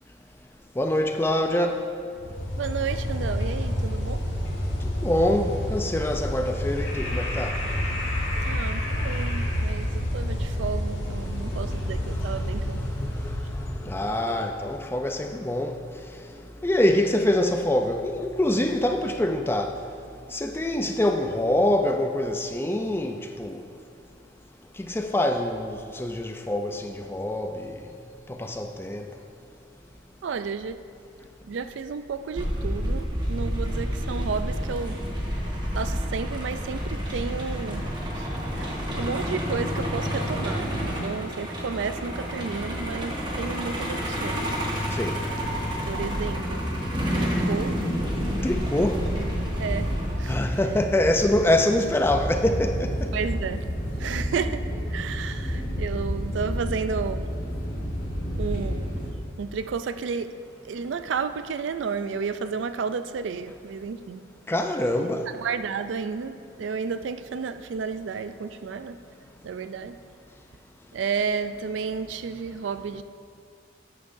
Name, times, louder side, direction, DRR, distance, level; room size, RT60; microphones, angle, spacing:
voice 1, 0.8-1.8 5.0-7.5 12.2-15.7 16.6-19.7 20.3-23.6 24.8-27.7 28.4-29.0 45.0-45.1 48.4-49.0 50.3-52.9 64.5-65.3, left 1 dB, 10° left, 5 dB, 0.4 m, -25 dB
sound 1, 2.2-14.1, left 1 dB, 80° left, 2.1 m, -29 dB
voice 2, 2.6-4.2 8.4-12.8 30.2-30.8 31.4-35.0 35.8-40.7 41.0-44.5 45.9-46.7 47.1-47.8 49.1-49.3 49.6-49.9 50.2-50.4 53.1-53.7 54.0-54.6 54.9-57.2 58.4-59.1 59.4-60.3 60.6-64.2 65.0-69.0 69.4-70.0 70.9-73.0, right 5 dB, 70° right, 11 dB, 0.4 m, -32 dB
Truck, 32.4-50.1, equal, 25° right, 1.2 m, -29 dB
sound 2, 45.4-59.1, equal, 60° left, 2.5 m, -31 dB
12.5 x 10.0 x 2.6 m, 2.4 s
head